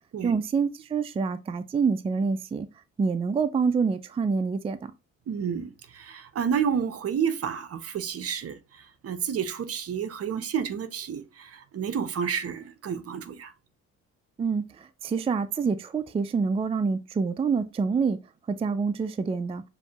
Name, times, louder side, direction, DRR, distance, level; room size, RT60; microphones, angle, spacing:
voice 1, 0.2-2.7 3.0-4.9 14.4-18.2 18.5-19.6, right 5 dB, 20° right, 0.3 m, -26 dB
voice 2, 5.3-13.5, right 7 dB, 50° right, 0.7 m, -30 dB
6.9 x 2.6 x 2.3 m
cardioid pair, 90°, 30 cm